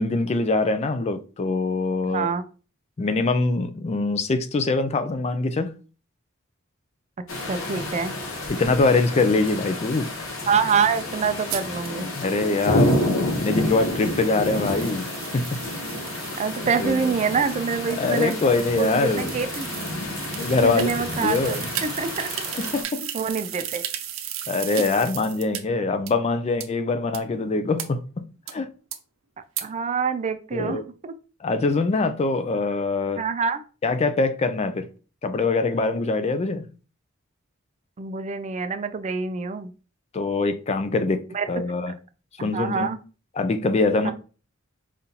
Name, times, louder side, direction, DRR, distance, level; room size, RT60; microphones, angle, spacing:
voice 1, 0.0-2.3 3.0-5.8 8.5-10.1 12.2-13.0 13.2-15.1 15.3-15.6 16.8-17.1 18.0-19.3 20.4-20.9 21.2-21.6 22.6-23.0 24.5-28.7 30.5-30.8 31.4-33.2 33.8-34.9 35.2-36.7 40.1-41.9 42.4-42.9 43.4-44.1, left 3 dB, 30° left, 0.4 m, -23 dB
voice 2, 2.0-2.4 7.5-8.2 10.5-12.1 16.4-18.5 18.8-19.7 20.6-22.3 23.1-23.8 29.6-31.1 33.2-33.6 38.0-39.7 41.3-41.6 42.4-43.0 44.0-44.1, right 5 dB, 35° right, 0.4 m, -26 dB
sound 1, 7.3-22.8, left 1 dB, 85° left, 1.0 m, -29 dB
sound 2, 11.5-25.6 26.1-26.2 26.6-26.7 27.1-27.2 27.8-27.9 28.5-28.6 28.9-29.0 29.6-29.7, right 10 dB, 85° right, 0.6 m, -36 dB
5.3 x 2.5 x 2.8 m
head